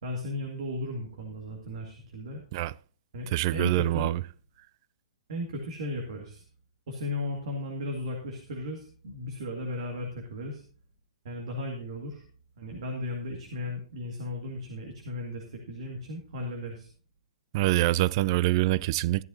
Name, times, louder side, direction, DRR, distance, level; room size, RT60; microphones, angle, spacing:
voice 1, 0.0-2.4 3.1-4.1 5.3-6.4 6.9-10.6 11.2-12.3 12.6-16.9, left 1 dB, 65° right, 2.1 m, -36 dB
voice 2, 3.3-4.2 17.5-19.2, right 17 dB, 45° right, 0.4 m, -25 dB
13.5 x 10.5 x 2.8 m
hypercardioid pair, 125°, 4 cm